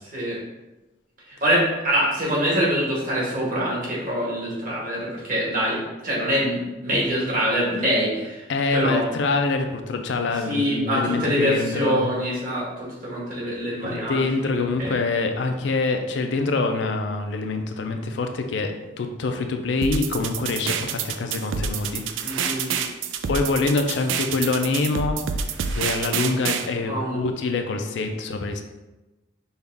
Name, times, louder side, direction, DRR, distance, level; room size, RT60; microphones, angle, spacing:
voice 1, 1.3-9.1 10.3-15.0 22.2-22.7 26.8-27.2, equal, 45° right, -5 dB, 1.4 m, -25 dB
voice 2, 8.5-12.1 13.8-18.7 19.0-22.0 22.4-22.5 23.3-25.2 25.7-28.6, left 3 dB, 70° left, 5 dB, 0.4 m, -25 dB
sound 1, 19.8-26.7, right 6 dB, 85° right, 0.4 m, -28 dB
5.4 x 2.4 x 3.4 m, 1.1 s
head